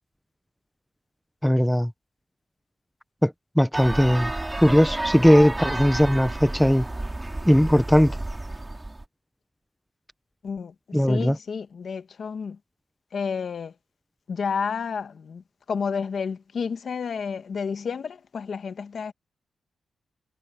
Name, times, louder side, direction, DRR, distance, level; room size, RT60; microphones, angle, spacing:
voice 1, 1.4-1.9 3.2-4.3 4.6-6.9 7.5-8.1 10.9-11.4, equal, ahead, 0.5 m, -19 dB
sound 1, 3.7-9.0, right 2 dB, 15° right, 4.5 m, -31 dB
voice 2, 10.4-12.6 13.1-13.7 14.3-19.1, left 6 dB, 50° left, 1.4 m, -31 dB
wide cardioid pair, 155°, 0 cm